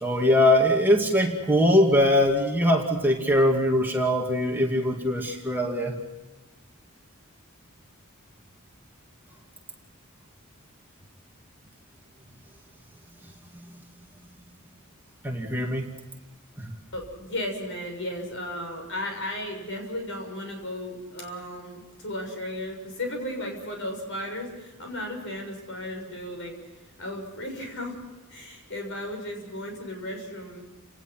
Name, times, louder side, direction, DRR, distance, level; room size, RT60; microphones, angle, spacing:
voice 1, 0.0-5.9 13.5-13.8 15.2-15.9 16.6-16.7, left 1 dB, 10° right, 0 dB, 2.3 m, -22 dB
voice 2, 16.9-26.6 27.0-28.0 28.3-30.6, left 1 dB, 60° left, 3 dB, 6.9 m, -35 dB
30.0 x 18.5 x 6.0 m, 1.1 s
head